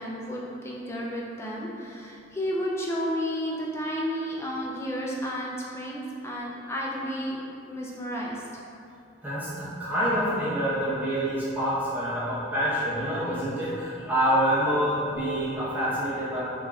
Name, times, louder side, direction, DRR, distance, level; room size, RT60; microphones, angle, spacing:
voice 1, 0.0-7.4 7.7-8.4, equal, 15° left, -3 dB, 0.3 m, -32 dB
voice 2, 9.2-16.4, equal, 10° right, -10 dB, 0.9 m, -27 dB
4.5 x 2.9 x 2.4 m, 2.6 s
head